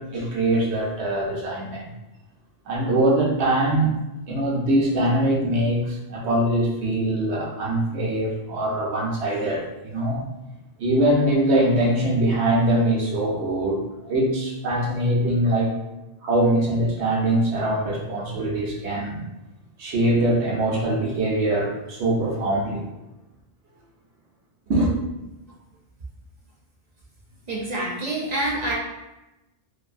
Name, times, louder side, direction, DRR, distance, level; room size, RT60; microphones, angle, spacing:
voice 1, 0.0-1.8 2.7-4.0 4.3-10.2 10.8-15.7 16.2-19.2 19.8-22.8 24.7-24.9, right 1 dB, 80° right, -3 dB, 1.0 m, -22 dB
voice 2, 27.5-28.7, right 1 dB, 50° right, -4 dB, 0.6 m, -26 dB
2.6 x 2.5 x 2.4 m, 0.99 s
omnidirectional pair, 1.1 m